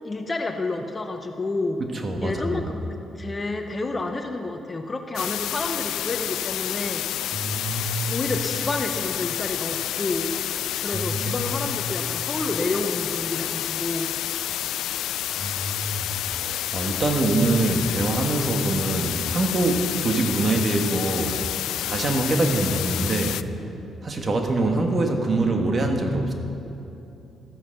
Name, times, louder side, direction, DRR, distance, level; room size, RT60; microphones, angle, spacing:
voice 1, 0.0-1.8 2.2-7.1 8.1-10.4 10.8-14.1, left 2 dB, 25° left, 5 dB, 1.0 m, -29 dB
voice 2, 1.9-2.6 7.3-8.2 10.9-11.8 15.3-21.4 21.8-23.4 24.0-26.3, right 2 dB, 35° right, 3 dB, 1.6 m, -24 dB
sound 1, 5.2-23.4, left 12 dB, 85° left, 0.3 m, -29 dB
13.5 x 9.7 x 6.7 m, 2.8 s
cardioid pair, 90°, 0 cm